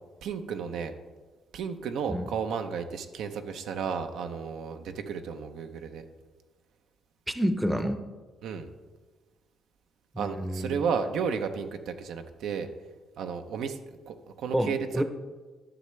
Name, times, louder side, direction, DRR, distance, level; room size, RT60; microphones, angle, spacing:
voice 1, 0.2-0.9 1.5-6.0 8.4-8.7 10.2-12.7 13.2-13.8 14.1-15.0, right 6 dB, 80° right, 7 dB, 0.6 m, -33 dB
voice 2, 7.3-8.0 10.1-10.8 14.5-15.0, equal, 10° right, 9 dB, 0.6 m, -28 dB
11.5 x 6.7 x 3.2 m, 1.3 s
cardioid pair, 90°, 0 cm